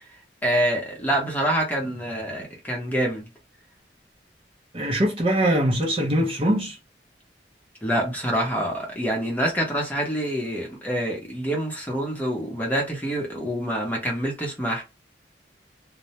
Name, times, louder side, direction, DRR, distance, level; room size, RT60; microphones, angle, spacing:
voice 1, 0.4-3.3 7.8-14.8, right 1 dB, 10° left, 0.7 m, -26 dB
voice 2, 4.7-6.8, right 1 dB, 30° right, 0.5 m, -22 dB
2.2 x 2.0 x 2.8 m
head